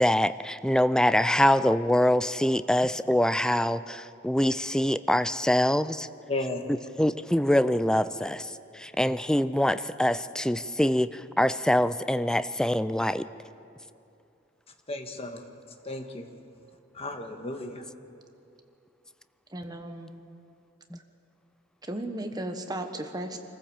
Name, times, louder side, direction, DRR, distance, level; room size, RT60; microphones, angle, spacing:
voice 1, 0.0-6.1 7.0-13.2 20.9-21.0, left 1 dB, 5° left, 13 dB, 0.4 m, -24 dB
voice 2, 6.3-6.7 14.9-15.4 15.8-16.3 16.9-17.8, left 2 dB, 30° left, 5 dB, 1.5 m, -34 dB
voice 3, 19.5-20.1 21.9-23.4, right 1 dB, 20° right, 5 dB, 1.3 m, -35 dB
26.0 x 15.0 x 7.3 m, 2.6 s
head